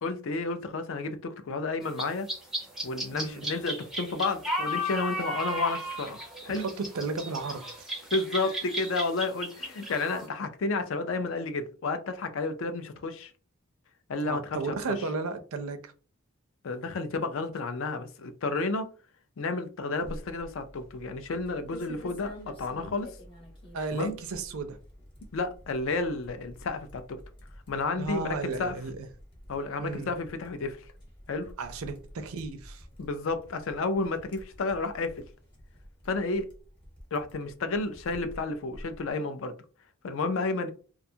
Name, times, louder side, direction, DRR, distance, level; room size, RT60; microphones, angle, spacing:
voice 1, 0.0-2.3 2.8-6.2 6.4-6.6 8.1-13.3 14.1-15.0 16.6-18.9 19.4-23.1 23.9-24.1 25.3-27.2 27.7-28.8 29.5-30.8 31.3-31.5 33.0-35.2 36.1-36.5 37.1-39.6 40.0-40.7, left 3 dB, 65° left, 0.4 m, -31 dB
sound 1, 1.8-10.3, equal, ahead, 0.5 m, -35 dB
voice 2, 3.1-3.5 6.6-7.9 14.2-15.9 23.7-24.8 28.0-29.1 29.8-30.1 31.6-32.8, right 3 dB, 75° right, 0.5 m, -34 dB
sound 2, 20.0-39.1, equal, 25° left, 0.9 m, -49 dB
2.5 x 2.3 x 2.7 m
head